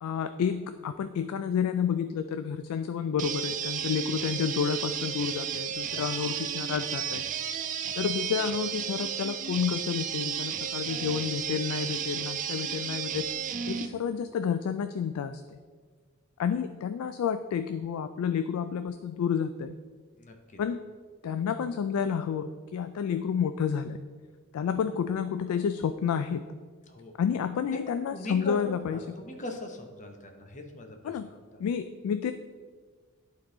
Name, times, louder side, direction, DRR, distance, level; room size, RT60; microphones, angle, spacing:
voice 1, 0.0-7.2 7.9-13.3 13.7-15.4 16.4-19.7 20.6-20.8 21.2-24.0 24.5-26.4 27.2-29.0 31.0-31.3 31.6-32.3, left 7 dB, 75° left, 10 dB, 0.3 m, -30 dB
sound 1, 3.2-13.9, right 8 dB, 35° right, 0.4 m, -33 dB
voice 2, 27.7-31.0, left 1 dB, 35° left, 4 dB, 0.8 m, -40 dB
11.5 x 3.8 x 3.8 m, 1.5 s
head